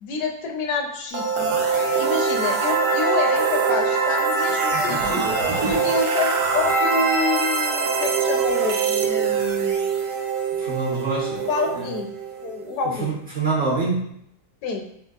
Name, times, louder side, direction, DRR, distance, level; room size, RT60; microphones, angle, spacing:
voice 1, 0.0-1.7 2.0-5.3 5.6-9.9 11.4-12.1 12.4-13.2 14.6-14.8, left 4 dB, 75° left, 2 dB, 1.1 m, -28 dB
sound 1, 1.1-12.9, right 5 dB, 85° right, 1.2 m, -23 dB
voice 2, 10.6-11.4 11.7-11.9 12.8-14.1, right 4 dB, 55° right, -5 dB, 0.7 m, -25 dB
4.4 x 2.6 x 2.2 m, 0.71 s
omnidirectional pair, 1.7 m